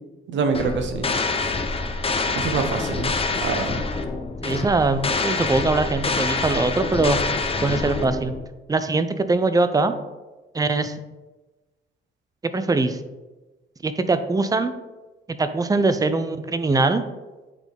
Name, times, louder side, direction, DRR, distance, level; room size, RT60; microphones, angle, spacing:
voice 1, 0.3-1.1 2.4-3.9, right 4 dB, 70° right, 6 dB, 1.0 m, -25 dB
sound 1, 0.5-8.4, left 3 dB, 30° left, 0.7 m, -26 dB
voice 2, 4.4-7.2 7.6-8.3 8.7-9.9 10.5-11.0 12.4-13.0 13.8-14.7 15.3-17.0, right 3 dB, 20° right, 10 dB, 0.6 m, -22 dB
8.6 x 4.0 x 3.5 m, 1.1 s
cardioid pair, 90°, 20 cm